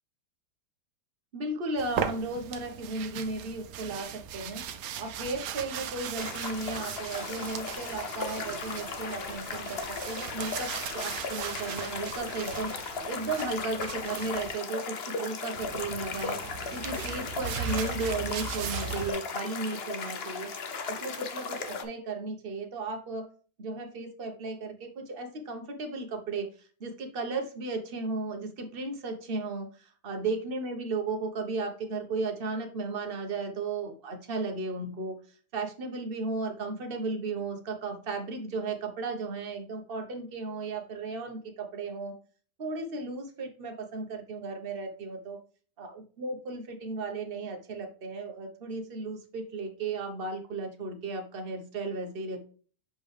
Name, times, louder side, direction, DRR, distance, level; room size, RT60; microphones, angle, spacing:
voice 1, 1.3-4.1 4.3-4.6 5.0-16.4 16.7-20.5 20.9-23.3 23.6-26.5 26.8-29.7 30.0-35.1 35.5-42.1 42.6-45.4 45.8-52.4, right 3 dB, 35° right, 4 dB, 1.2 m, -35 dB
sound 1, 1.8-14.5 15.5-19.1, right 7 dB, 65° right, 1.0 m, -38 dB
sound 2, 6.1-21.8, left 4 dB, 45° left, 0.9 m, -36 dB
6.9 x 5.2 x 3.3 m, 0.40 s
omnidirectional pair, 1.8 m